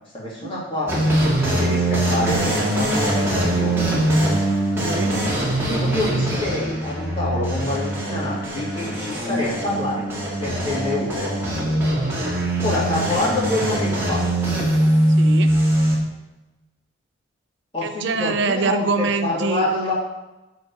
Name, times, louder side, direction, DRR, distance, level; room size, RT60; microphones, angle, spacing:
voice 1, 0.1-0.9 1.4-3.9 5.6-10.0 10.4-11.3 12.6-14.2 17.7-19.9, left 2 dB, 25° left, -7 dB, 2.9 m, -26 dB
sound 1, 0.9-15.9, right 1 dB, 10° right, 2.1 m, -22 dB
voice 2, 4.8-5.2 12.0-12.4 15.2-15.5 17.8-19.6, right 4 dB, 60° right, 8 dB, 0.5 m, -25 dB
7.8 x 4.6 x 6.7 m, 1.0 s
head